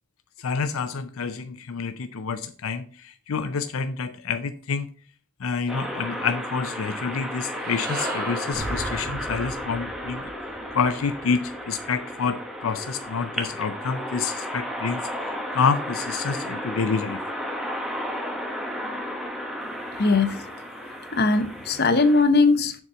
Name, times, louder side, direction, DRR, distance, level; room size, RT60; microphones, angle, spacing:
voice 1, 0.4-4.9 5.4-10.2 10.7-11.4 11.7-15.0 15.5-17.2, left 5 dB, 75° left, 0.5 m, -28 dB
sound 1, 5.7-22.2, equal, ahead, 0.9 m, -33 dB
sound 2, 7.3-11.7, right 3 dB, 45° right, 1.4 m, -40 dB
sound 3, 8.5-13.3, right 1 dB, 60° right, 1.5 m, -39 dB
voice 2, 19.9-20.4 20.8-22.8, left 3 dB, 45° left, 0.8 m, -20 dB
7.0 x 4.3 x 6.7 m
head